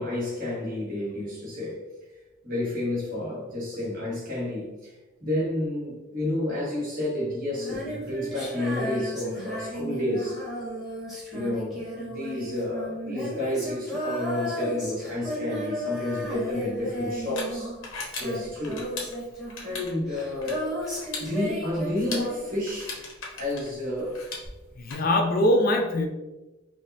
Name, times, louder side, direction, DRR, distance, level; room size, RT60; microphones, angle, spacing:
voice 1, 0.0-1.8 2.4-10.4 11.3-17.7 18.2-18.9 19.6-20.6 21.2-23.0 23.4-24.2, left 1 dB, 45° right, -6 dB, 1.4 m, -30 dB
Female singing, 7.5-22.9 24.4-24.5, equal, ahead, 1.1 m, -34 dB
sound 1, 16.3-24.9, left 3 dB, 75° left, 0.9 m, -40 dB
voice 2, 24.8-26.1, left 1 dB, 45° left, 4 dB, 0.4 m, -22 dB
4.6 x 2.1 x 2.7 m, 1.1 s
head